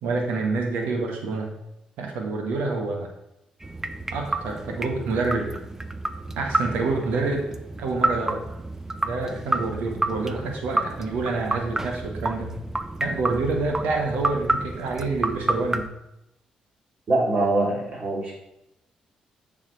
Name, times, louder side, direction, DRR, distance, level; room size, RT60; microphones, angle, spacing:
voice 1, 0.0-1.5 2.0-3.1 4.1-5.5 6.4-8.4 9.0-12.5 13.0-15.9, right 3 dB, 80° right, 2 dB, 1.4 m, -27 dB
sound 1, 3.6-15.9, right 2 dB, 15° right, 0.7 m, -30 dB
voice 2, 17.1-18.4, right 2 dB, 55° right, -3 dB, 3.1 m, -23 dB
7.4 x 5.0 x 4.8 m, 0.86 s
supercardioid pair, 55°, 3 cm